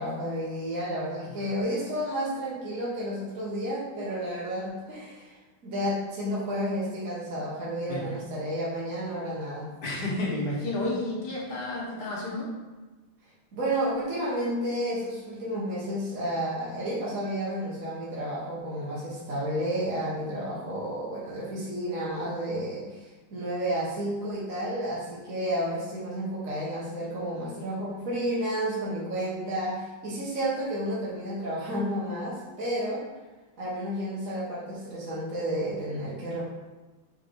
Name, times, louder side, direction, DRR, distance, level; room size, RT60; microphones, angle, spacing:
voice 1, 0.0-9.7 13.5-33.0 33.6-36.5, equal, 45° right, -8 dB, 1.6 m, -31 dB
voice 2, 9.8-12.5, left 2 dB, 60° left, -3 dB, 1.7 m, -31 dB
4.9 x 4.4 x 4.6 m, 1.2 s
omnidirectional pair, 2.2 m